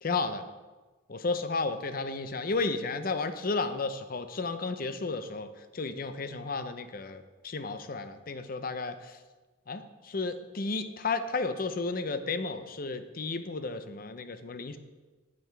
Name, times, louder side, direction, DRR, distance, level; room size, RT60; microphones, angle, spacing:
voice 1, 0.0-0.4 1.1-9.2 9.7-14.8, left 3 dB, 45° left, 10 dB, 0.6 m, -33 dB
9.3 x 9.3 x 3.4 m, 1.3 s
head